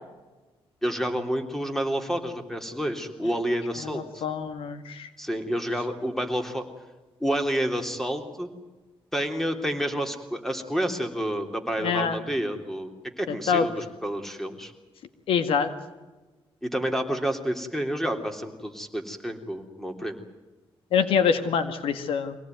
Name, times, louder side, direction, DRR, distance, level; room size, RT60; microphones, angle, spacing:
voice 1, 0.8-4.2 5.2-6.6 7.2-8.5 9.1-14.7 16.6-20.2, equal, 5° left, 5 dB, 3.4 m, -29 dB
voice 2, 4.2-4.8 11.8-12.2 13.5-13.7 15.3-15.7 20.9-22.4, left 6 dB, 85° left, 10 dB, 1.9 m, -24 dB
24.5 x 18.0 x 9.4 m, 1.2 s
cardioid pair, 100°, 9 cm